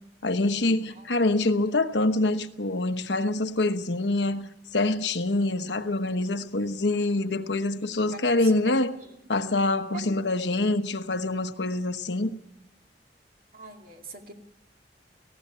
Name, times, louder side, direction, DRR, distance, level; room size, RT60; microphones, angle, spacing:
voice 1, 0.2-4.5 4.7-9.0 9.3-12.3, left 2 dB, 80° left, 1.1 m, -25 dB
voice 2, 13.5-14.3, right 3 dB, 55° right, 2.4 m, -42 dB
18.5 x 16.0 x 9.5 m
head